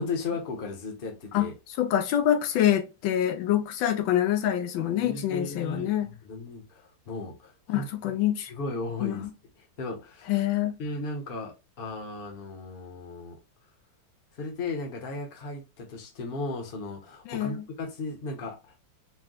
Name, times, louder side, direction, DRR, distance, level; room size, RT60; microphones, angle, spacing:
voice 1, 0.0-1.5 5.0-8.1 8.5-9.3 9.6-10.3 10.8-13.4 14.4-18.6, left 3 dB, 40° left, 0.9 m, -36 dB
voice 2, 1.8-6.1 7.7-8.5 9.0-9.3 10.3-10.8 17.3-17.6, left 11 dB, 85° left, 1.4 m, -26 dB
4.6 x 2.2 x 3.8 m
omnidirectional pair, 2.1 m